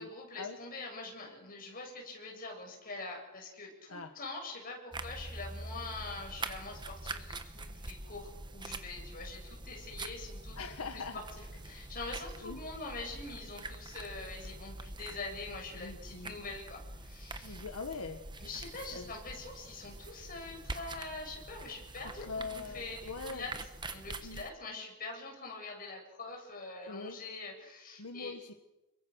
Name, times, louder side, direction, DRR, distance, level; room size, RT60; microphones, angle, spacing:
voice 1, 0.0-10.6 11.1-11.2 11.6-17.6 18.4-28.3, left 3 dB, 40° left, 0 dB, 7.5 m, -44 dB
sound 1, 4.9-24.5, right 2 dB, 20° right, 1.2 m, -45 dB
voice 2, 10.6-11.2 12.4-12.6 15.7-16.4 17.4-18.2 18.9-19.1 22.2-23.4 24.2-24.4 26.8-27.2 28.0-28.5, left 4 dB, 80° left, 6 dB, 1.5 m, -42 dB
28.0 x 22.5 x 6.5 m, 1.0 s
head